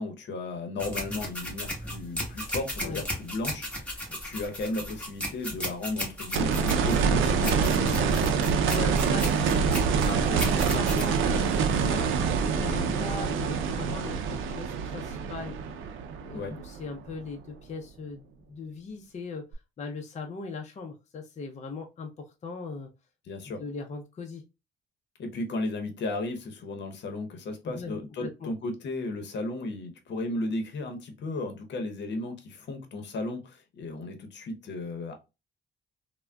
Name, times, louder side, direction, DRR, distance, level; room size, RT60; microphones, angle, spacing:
voice 1, 0.0-8.3 16.3-16.6 23.3-23.6 25.2-35.1, left 2 dB, 65° left, 6 dB, 0.8 m, -35 dB
sound 1, 0.8-11.9, equal, 5° left, 1.2 m, -36 dB
sound 2, 6.3-17.3 19.5-19.6, right 6 dB, 85° right, 0.5 m, -26 dB
voice 2, 8.6-15.6 16.2-19.5 19.8-22.9 23.6-24.4 27.6-28.5, left 4 dB, 35° left, 3 dB, 0.5 m, -39 dB
3.4 x 2.1 x 2.2 m, 0.26 s
cardioid pair, 90°, 20 cm